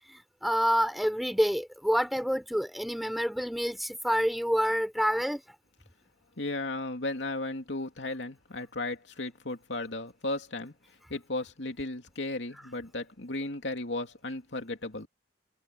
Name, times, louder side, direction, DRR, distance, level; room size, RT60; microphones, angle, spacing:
voice 1, 0.1-5.4, equal, ahead, 3.5 m, -28 dB
voice 2, 6.4-10.7 11.1-15.1, left 2 dB, 80° left, 2.7 m, -35 dB
head